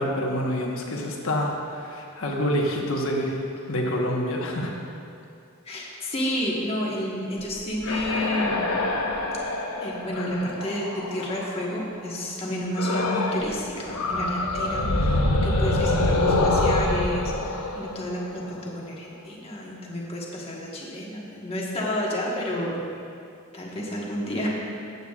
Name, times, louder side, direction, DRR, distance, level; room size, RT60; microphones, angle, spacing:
voice 1, 0.0-3.4 3.7-4.7, equal, 65° left, -1 dB, 1.2 m, -27 dB
voice 2, 5.6-8.7 9.8-22.8 23.5-24.5, equal, 25° left, -4 dB, 1.4 m, -30 dB
sound 1, 7.7-11.7 12.8-13.5 13.8-18.7, left 2 dB, 90° left, 1.0 m, -25 dB
14.0 x 8.1 x 2.4 m, 2.5 s
head